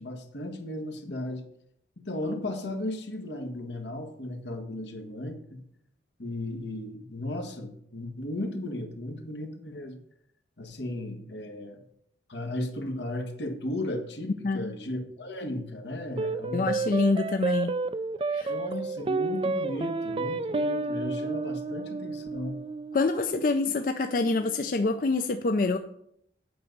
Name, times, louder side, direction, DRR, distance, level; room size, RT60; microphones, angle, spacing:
voice 1, 0.0-1.4 2.0-5.6 6.2-10.0 10.6-11.8 12.3-16.7 18.5-22.6, left 1 dB, 85° left, 5 dB, 1.5 m, -35 dB
sound 1, 16.2-24.8, right 3 dB, 30° right, 0.3 m, -31 dB
voice 2, 16.5-17.8 18.3-18.5 22.9-25.8, left 3 dB, 50° left, 8 dB, 0.4 m, -26 dB
8.6 x 5.3 x 6.7 m, 0.72 s
head